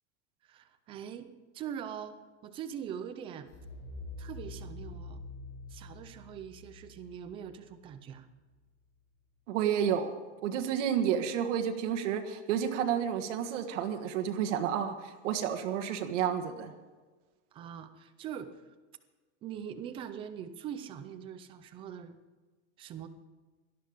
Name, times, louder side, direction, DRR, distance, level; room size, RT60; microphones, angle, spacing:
voice 1, 0.4-2.2 2.4-3.5 4.2-5.2 5.7-8.3 17.5-18.5 19.4-22.2 22.8-23.1, right 8 dB, 15° right, 11 dB, 0.4 m, -42 dB
sound 1, 3.5-8.3, left 2 dB, 50° left, 5.1 m, -46 dB
voice 2, 9.5-10.1 10.4-16.7, right 9 dB, 90° right, 5 dB, 1.6 m, -30 dB
18.0 x 12.5 x 5.1 m, 1.3 s
supercardioid pair, 180°, 35 cm